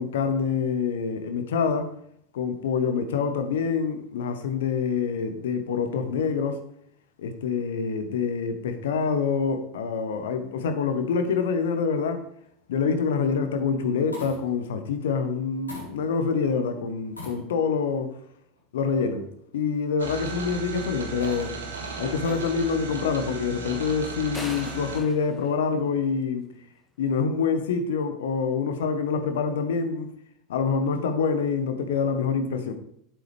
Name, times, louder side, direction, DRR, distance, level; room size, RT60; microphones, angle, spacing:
voice 1, 0.0-1.9 2.3-6.6 7.2-12.2 12.7-18.1 18.7-19.3 19.5-21.5 22.0-26.4 27.0-30.1 30.5-32.7, left 5 dB, 70° left, 8 dB, 1.1 m, -26 dB
sound 1, 12.4-12.8 13.8-14.7 15.7-16.4 17.1-17.9 18.6-18.7 20.8-22.6 23.8-24.3, left 1 dB, 90° left, 4.0 m, -44 dB
sound 2, 20.0-25.0, right 4 dB, 80° right, 1.6 m, -36 dB
sound 3, 24.3-26.5, left 2 dB, 10° left, 1.1 m, -41 dB
8.3 x 7.8 x 3.4 m, 0.70 s
figure-of-eight pair, 80°, 0 cm